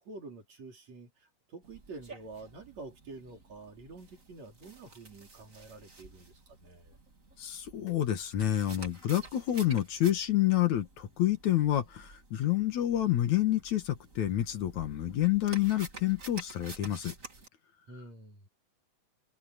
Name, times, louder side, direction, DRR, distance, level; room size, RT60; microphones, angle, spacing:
voice 1, 0.0-6.9 17.9-18.5, right 3 dB, 55° right, 5.2 m, -48 dB
sound 1, 1.6-17.5, right 3 dB, 25° right, 3.2 m, -51 dB
voice 2, 7.4-17.1, left 13 dB, 65° left, 2.7 m, -28 dB
omnidirectional pair, 3.7 m